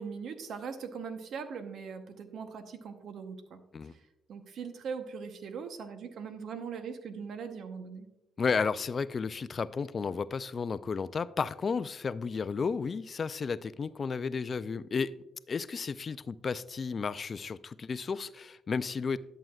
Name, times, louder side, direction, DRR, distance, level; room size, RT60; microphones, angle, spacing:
voice 1, 0.0-3.6 3.9-4.0 4.3-8.1, right 6 dB, 70° right, 0.9 m, -40 dB
voice 2, 8.4-15.1 15.5-19.2, left 5 dB, 40° left, 0.3 m, -33 dB
11.0 x 7.6 x 2.4 m
cardioid pair, 90°, 0 cm